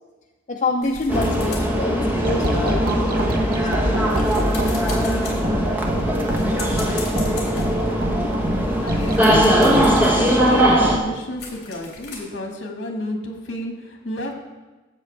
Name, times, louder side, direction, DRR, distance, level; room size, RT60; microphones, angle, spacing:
voice 1, 0.5-4.3, left 3 dB, 40° left, 1 dB, 0.6 m, -27 dB
sound 1, 0.8-2.7 3.2-12.2, left 3 dB, 60° left, 3.0 m, -39 dB
sound 2, 1.1-11.0, equal, 10° right, 1.1 m, -20 dB
sound 3, 2.2-10.0, right 1 dB, 55° right, 1.0 m, -25 dB
voice 2, 8.3-14.3, left 1 dB, 75° left, 2 dB, 1.8 m, -31 dB
12.5 x 8.1 x 3.3 m, 1.2 s
head